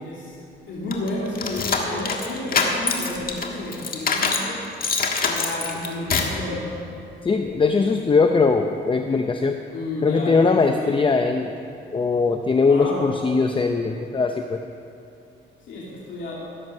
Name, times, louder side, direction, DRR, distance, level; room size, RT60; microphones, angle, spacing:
voice 1, 0.0-0.4 0.7-4.6 5.2-6.7 9.7-10.4 10.6-11.0 12.6-13.1 15.7-16.3, left 2 dB, 70° left, -5 dB, 2.5 m, -31 dB
sound 1, 0.9-4.5 4.8-6.4, left 4 dB, 45° left, 1.6 m, -24 dB
voice 2, 7.2-9.6 10.0-11.5 11.9-14.6, left 4 dB, 25° left, 5 dB, 0.7 m, -20 dB
16.0 x 7.8 x 6.4 m, 2.7 s
cardioid pair, 90°, 20 cm